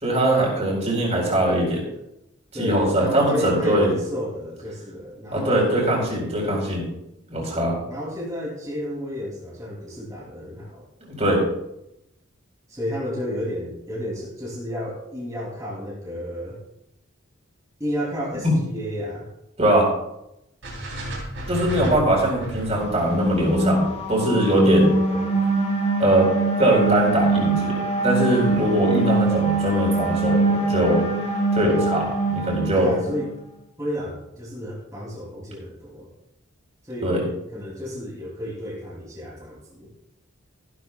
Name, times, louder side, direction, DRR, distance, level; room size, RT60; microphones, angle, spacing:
voice 1, 0.0-1.8 2.6-3.9 5.3-6.9 7.3-7.7 11.2-11.4 18.4-18.5 19.6-19.9 21.5-23.8 24.1-24.9 26.0-26.3 26.6-27.7 28.0-31.1 31.5-32.9 37.0-37.3, right 1 dB, 30° right, -2 dB, 4.1 m, -21 dB
voice 2, 2.5-5.8 7.9-10.8 12.7-16.6 17.8-19.3 24.6-25.3 32.8-33.3 33.8-36.1 36.8-37.2 37.5-39.9, equal, 15° right, -5 dB, 2.8 m, -31 dB
sound 1, 20.6-24.8, right 1 dB, 65° right, 3.4 m, -34 dB
sound 2, 22.8-33.3, right 2 dB, 30° left, 2.6 m, -23 dB
15.5 x 11.0 x 2.3 m, 0.84 s
head